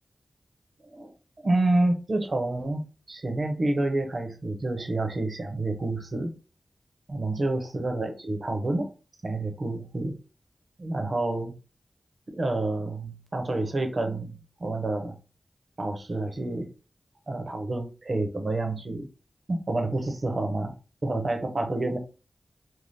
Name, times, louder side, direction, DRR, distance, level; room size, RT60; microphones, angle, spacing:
voice 1, 1.4-6.3 7.1-8.9 9.2-10.2 10.8-11.5 12.3-14.3 14.6-15.2 15.8-16.7 17.3-19.1 19.5-20.7 21.0-22.0, right 2 dB, 55° right, 0.8 m, -28 dB
2.7 x 2.2 x 3.4 m
cardioid pair, 40°, 0 cm